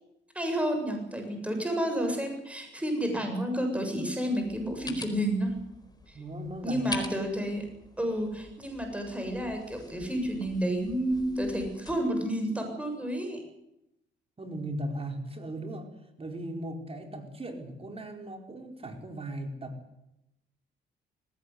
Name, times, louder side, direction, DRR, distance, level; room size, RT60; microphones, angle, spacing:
voice 1, 0.3-5.5 6.6-7.6 8.0-13.4, equal, 5° right, 4 dB, 7.4 m, -30 dB
sound 1, 4.4-12.0, left 3 dB, 20° left, 4.3 m, -45 dB
voice 2, 6.1-6.8 14.4-15.9 16.2-19.8, right 1 dB, 30° right, 4 dB, 4.8 m, -38 dB
19.5 x 17.0 x 9.7 m, 0.86 s
cardioid pair, 80°, 20 cm